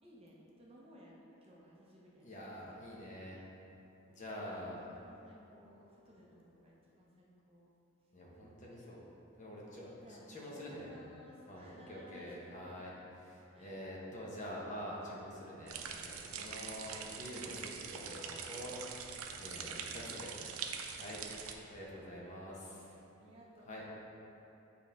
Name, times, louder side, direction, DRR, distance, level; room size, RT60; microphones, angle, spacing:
voice 1, 0.0-2.3 4.5-7.7 10.0-10.2 10.5-12.4 12.8-12.9 13.5-13.9 16.4-16.9 23.1-23.9, equal, 25° right, -4 dB, 0.8 m, -58 dB
voice 2, 2.2-3.5 4.1-4.8 8.1-9.0 9.4-10.9 11.5-12.9 13.2-18.8 19.4-20.3 20.9-21.2 21.7-23.0 23.7-23.9, equal, 35° left, -5 dB, 1.0 m, -46 dB
sound 1, 15.7-21.5, right 6 dB, 85° right, 0.5 m, -44 dB
8.1 x 3.5 x 4.2 m, 3.0 s
head